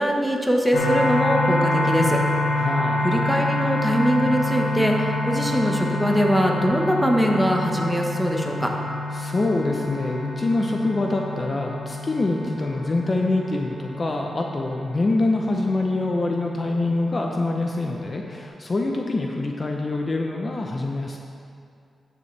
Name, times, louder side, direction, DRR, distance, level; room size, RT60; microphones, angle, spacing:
voice 1, 0.0-2.2 3.0-8.7, equal, ahead, 0 dB, 1.3 m, -22 dB
sound 1, 0.7-18.4, left 2 dB, 80° left, 1.4 m, -28 dB
voice 2, 2.6-3.1 9.1-21.2, left 2 dB, 40° left, 1 dB, 0.7 m, -25 dB
12.5 x 6.9 x 3.3 m, 2.4 s
cardioid pair, 70°, 0 cm